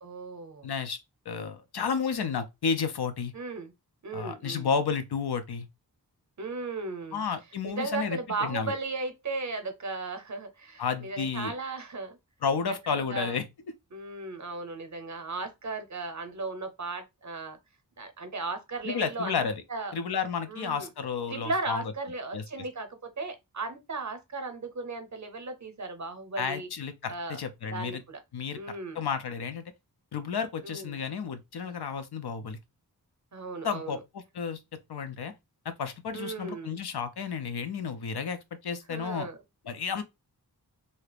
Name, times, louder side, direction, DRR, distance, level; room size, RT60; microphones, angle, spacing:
voice 1, 0.0-0.7 3.3-3.7 4.0-4.7 6.4-7.2 7.6-12.2 12.7-13.4 13.9-17.6 18.0-19.9 20.5-20.9 21.3-26.7 27.1-27.4 27.7-28.2 28.5-29.0 30.6-31.0 33.3-34.0 36.1-36.8 38.9-39.4, right 3 dB, 50° right, 0.7 m, -36 dB
voice 2, 0.6-1.0 1.3-3.3 4.1-5.7 7.1-8.7 10.8-11.5 12.4-13.4 18.8-19.6 19.9-21.8 22.3-22.4 26.4-28.0 28.3-28.6 28.9-29.6 30.1-32.6 33.6-34.6 34.9-35.3 35.7-39.3 39.7-40.0, left 6 dB, 80° left, 0.6 m, -32 dB
2.8 x 2.4 x 3.3 m
wide cardioid pair, 55°, 38 cm